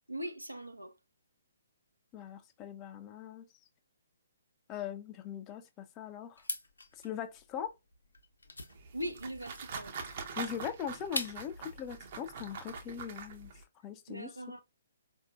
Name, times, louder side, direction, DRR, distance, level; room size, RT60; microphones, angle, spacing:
voice 1, 0.1-0.9 8.9-9.9 14.1-14.6, equal, 90° right, 0.7 m, -40 dB
voice 2, 2.1-3.5 4.7-6.4 7.0-7.7 10.4-13.5 13.8-14.6, left 9 dB, 20° left, 0.4 m, -41 dB
sound 1, 6.4-11.6, left 2 dB, 75° left, 0.7 m, -42 dB
sound 2, 8.7-13.6, right 5 dB, 40° right, 0.7 m, -44 dB
4.0 x 2.7 x 2.3 m
figure-of-eight pair, 130°, 0 cm